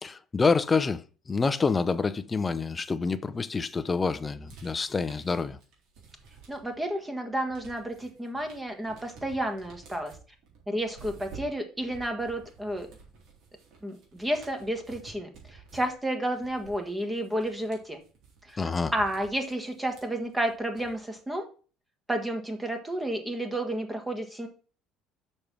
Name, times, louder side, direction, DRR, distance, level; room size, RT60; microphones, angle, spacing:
voice 1, 0.0-5.6 18.6-18.9, left 4 dB, 20° left, 0.6 m, -27 dB
sound 1, 4.5-6.9 7.2-21.2, right 5 dB, 65° right, 3.8 m, -52 dB
voice 2, 6.5-10.2 10.7-12.9 13.8-18.0 18.4-21.5 22.1-24.5, right 1 dB, 10° right, 1.6 m, -31 dB
6.7 x 5.4 x 6.0 m
cardioid pair, 110°, 0 cm